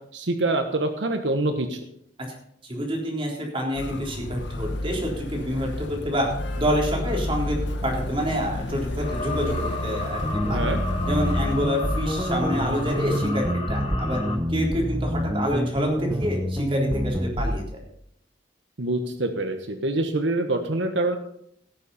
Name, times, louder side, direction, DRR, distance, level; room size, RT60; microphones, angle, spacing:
voice 1, 0.1-1.8 10.5-10.8 18.8-21.2, right 2 dB, 90° right, 6 dB, 1.2 m, -25 dB
voice 2, 2.6-6.3 6.6-10.2 10.5-10.6 11.1-14.2 14.5-17.6, equal, 30° right, -1 dB, 3.8 m, -27 dB
Motor vehicle (road), 3.7-13.3, left 1 dB, 75° left, 1.3 m, -31 dB
sound 1, 9.0-14.4, left 3 dB, 35° left, 1.7 m, -34 dB
sound 2, 10.2-17.6, equal, 15° right, 1.0 m, -27 dB
17.5 x 7.1 x 5.5 m, 0.71 s
head